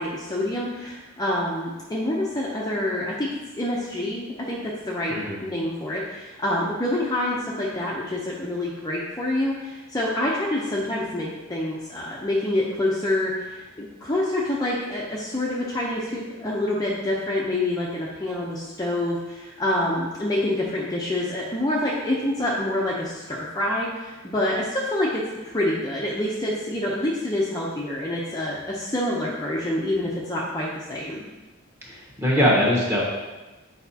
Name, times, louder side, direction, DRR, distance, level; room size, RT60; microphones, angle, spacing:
voice 1, 0.0-5.1 5.4-31.2, left 1 dB, 20° left, -5 dB, 0.6 m, -27 dB
voice 2, 31.8-33.0, equal, 10° right, -5 dB, 1.4 m, -21 dB
8.1 x 4.9 x 2.8 m, 1.1 s
head